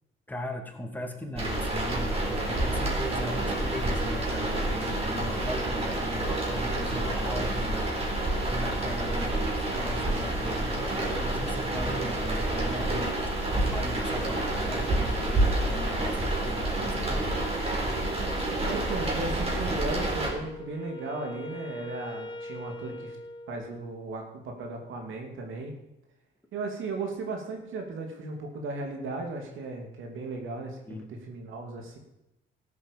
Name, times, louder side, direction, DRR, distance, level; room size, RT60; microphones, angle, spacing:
voice 1, 0.3-13.2 13.5-17.8 30.9-31.1, left 1 dB, 10° left, 3 dB, 2.6 m, -38 dB
sound 1, 1.4-20.3, right 1 dB, 30° right, 4.1 m, -28 dB
voice 2, 18.6-23.2 23.5-25.7 26.5-32.0, right 3 dB, 80° right, 3 dB, 2.7 m, -36 dB
Wind instrument woodwind instrument, 19.8-24.1, left 2 dB, 25° left, 1.3 m, -42 dB
14.0 x 8.2 x 7.5 m, 0.90 s
cardioid pair, 90°, 20 cm